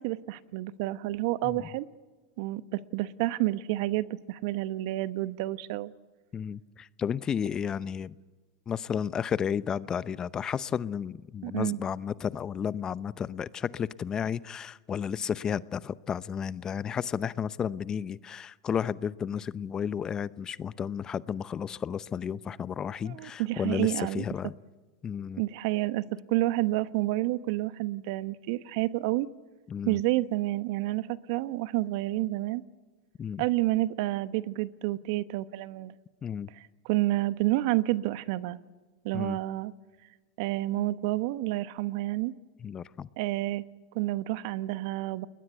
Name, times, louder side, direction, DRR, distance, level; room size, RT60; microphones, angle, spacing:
voice 1, 0.0-1.9 2.4-5.9 11.4-11.8 23.0-24.2 25.4-29.3 29.8-32.6 33.4-36.0 36.6-38.6 39.0-39.7 40.4-42.3 43.2-43.6 43.9-45.3, right 17 dB, 60° right, 15 dB, 1.1 m, -29 dB
voice 2, 6.3-8.1 8.7-24.5 25.0-25.4 29.7-30.0 33.2-33.4 36.2-36.5 39.1-39.4 42.6-43.1, left 7 dB, 30° left, 18 dB, 0.7 m, -32 dB
29.5 x 21.0 x 8.2 m, 1.3 s
hypercardioid pair, 100°, 2 cm